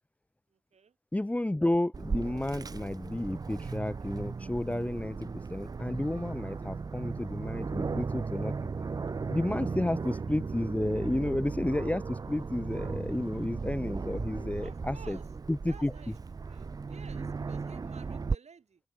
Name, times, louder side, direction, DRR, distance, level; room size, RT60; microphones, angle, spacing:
voice 1, 1.1-8.5 9.3-15.2 15.5-16.1, left 1 dB, 10° left, 0.7 m, -32 dB
Aircraft, 1.9-18.3, right 4 dB, 35° right, 0.4 m, -36 dB
sound 1, 11.7-15.8, right 4 dB, 60° right, 4.7 m, -65 dB
voice 2, 14.6-15.2 15.7-16.1 16.5-18.8, right 6 dB, 75° right, 3.5 m, -53 dB
open air
cardioid pair, 65°, 11 cm